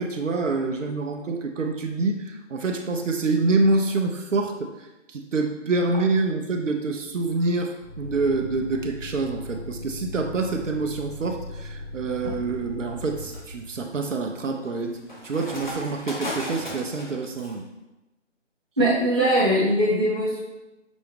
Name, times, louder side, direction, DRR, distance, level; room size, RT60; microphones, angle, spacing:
voice 1, 0.0-4.7 5.1-17.6, right 3 dB, 80° right, 3 dB, 0.6 m, -26 dB
Motor vehicle (road), 7.8-14.2 16.4-16.9 17.2-17.6, left 1 dB, 15° left, 1.2 m, -38 dB
sound 1, 11.7-12.1 12.7-17.3, left 1 dB, 40° left, 0.7 m, -37 dB
voice 2, 18.8-20.4, right 1 dB, 20° right, -10 dB, 0.9 m, -21 dB
6.0 x 2.1 x 3.2 m, 0.99 s
figure-of-eight pair, 170°, 37 cm